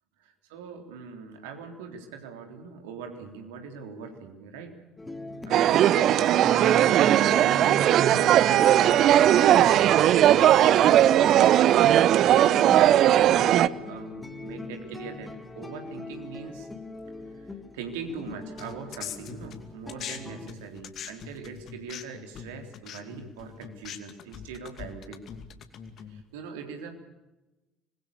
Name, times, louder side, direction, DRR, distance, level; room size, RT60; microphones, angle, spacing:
voice 1, 0.2-4.8 5.4-16.7 17.3-17.5 17.7-25.2 26.1-26.9, right 5 dB, 65° right, 5 dB, 3.6 m, -42 dB
sound 1, 5.0-20.5, left 2 dB, 15° left, 2.8 m, -41 dB
sound 2, 5.5-13.7, right 12 dB, 50° right, 0.8 m, -18 dB
sound 3, 18.6-20.2 20.5-26.2, left 8 dB, 45° left, 2.5 m, -41 dB
26.0 x 21.0 x 7.0 m, 1.0 s
figure-of-eight pair, 60°, 0 cm